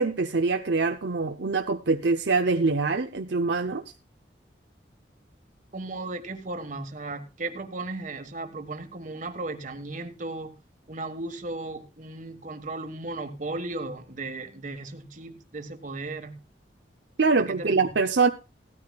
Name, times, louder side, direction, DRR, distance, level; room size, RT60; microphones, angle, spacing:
voice 1, 0.0-3.8 17.2-18.3, right 4 dB, 70° right, 6 dB, 0.8 m, -24 dB
voice 2, 5.7-10.5 10.9-16.4 17.4-17.9, right 2 dB, 45° right, 8 dB, 1.5 m, -36 dB
17.0 x 13.0 x 2.4 m, 0.28 s
head